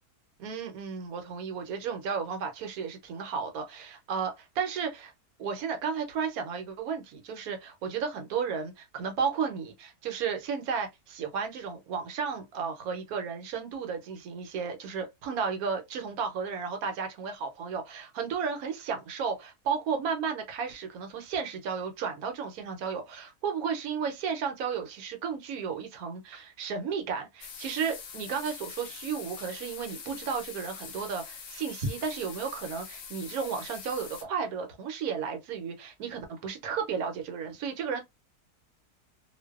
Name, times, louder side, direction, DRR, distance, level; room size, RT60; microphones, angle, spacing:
voice 1, 0.4-5.1 5.4-38.0, right 6 dB, 75° right, 1.1 m, -33 dB
sound 1, 27.4-34.2, left 6 dB, 65° left, 0.9 m, -44 dB
2.5 x 2.2 x 2.3 m
omnidirectional pair, 1.6 m